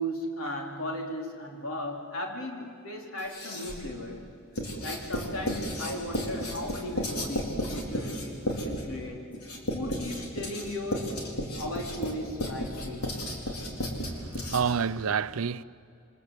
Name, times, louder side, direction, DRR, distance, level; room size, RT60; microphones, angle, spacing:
voice 1, 0.0-4.2 4.8-9.2 9.7-11.1 11.6-13.1, left 1 dB, 65° left, 3.9 m, -36 dB
Writing, 3.2-3.9 4.6-14.9, equal, 85° left, 4.4 m, -33 dB
voice 2, 14.1-15.6, right 6 dB, 65° right, 0.6 m, -29 dB
28.5 x 24.5 x 8.3 m
head